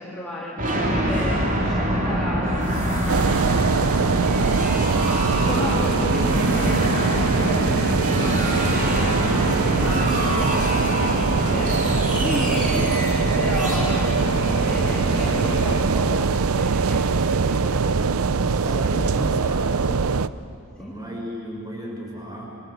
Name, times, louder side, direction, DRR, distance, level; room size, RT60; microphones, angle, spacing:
voice 1, 0.0-3.7 4.1-11.8 12.2-14.1 14.6-19.0 20.8-20.9, left 1 dB, 5° left, -7 dB, 3.1 m, -34 dB
sound 1, 0.6-15.3, right 1 dB, 40° right, 3.8 m, -26 dB
sound 2, 3.1-20.3, right 5 dB, 80° right, 0.6 m, -22 dB
sound 3, 5.3-15.8, equal, 30° left, 4.1 m, -27 dB
voice 2, 18.6-20.0 20.8-22.5, equal, 20° right, -1 dB, 6.0 m, -34 dB
27.0 x 24.5 x 8.2 m, 2.6 s
head